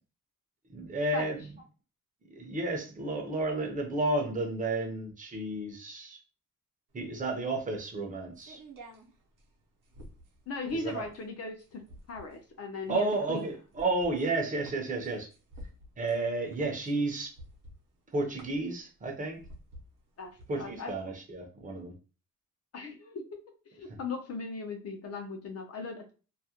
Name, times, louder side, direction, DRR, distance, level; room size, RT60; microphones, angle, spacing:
voice 1, 0.7-1.4 2.3-6.2 6.9-8.6 10.7-11.0 12.9-15.3 16.0-17.3 18.1-19.4 20.5-21.9, right 2 dB, 25° right, 1 dB, 0.6 m, -32 dB
sound 1, 7.0-20.9, right 1 dB, 70° right, 0.7 m, -52 dB
voice 2, 10.5-11.8 12.1-13.5 20.2-20.9 22.7-23.2 23.7-26.1, left 3 dB, 50° left, 4 dB, 0.6 m, -38 dB
2.3 x 2.1 x 2.8 m, 0.34 s
wide cardioid pair, 180°, 33 cm